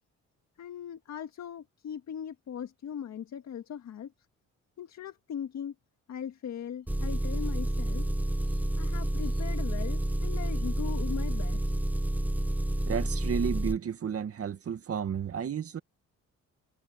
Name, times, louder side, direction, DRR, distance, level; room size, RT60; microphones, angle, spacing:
voice 1, 0.6-4.1 4.8-5.7 6.1-8.1 8.4-11.7, left 8 dB, 65° left, 1.9 m, -39 dB
Engine, 6.9-13.8, right 1 dB, 5° right, 1.0 m, -29 dB
voice 2, 12.9-15.8, right 7 dB, 50° right, 2.1 m, -32 dB
cardioid pair, 90°, 30 cm